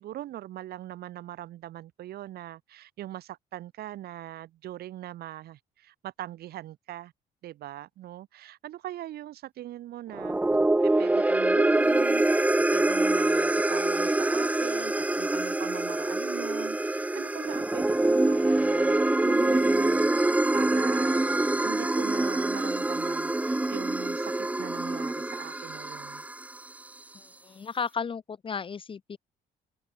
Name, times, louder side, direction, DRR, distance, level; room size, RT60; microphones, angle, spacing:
voice 1, 0.0-7.1 7.4-10.4 10.8-26.2, right 13 dB, 70° right, 3.3 m, -41 dB
sound 1, 10.1-26.6, right 2 dB, 10° right, 0.7 m, -25 dB
voice 2, 27.1-29.2, left 6 dB, 30° left, 1.1 m, -34 dB
open air
cardioid pair, 110°, 17 cm